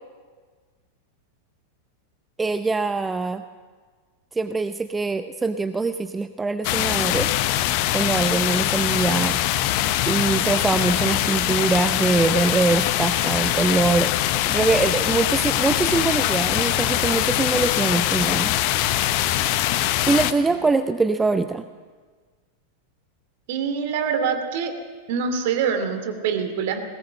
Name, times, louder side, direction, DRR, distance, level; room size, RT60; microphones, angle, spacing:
voice 1, 2.4-3.4 4.3-7.4 7.9-9.6 10.1-14.1 14.5-18.5 20.1-21.6, right 3 dB, 10° right, 11 dB, 0.6 m, -23 dB
sound 1, 6.6-20.3, left 13 dB, 45° left, 0.9 m, -22 dB
voice 2, 23.5-24.8 25.1-26.8, right 6 dB, 50° right, 7 dB, 2.5 m, -25 dB
20.5 x 18.0 x 7.8 m, 1.5 s
figure-of-eight pair, 90°, 0 cm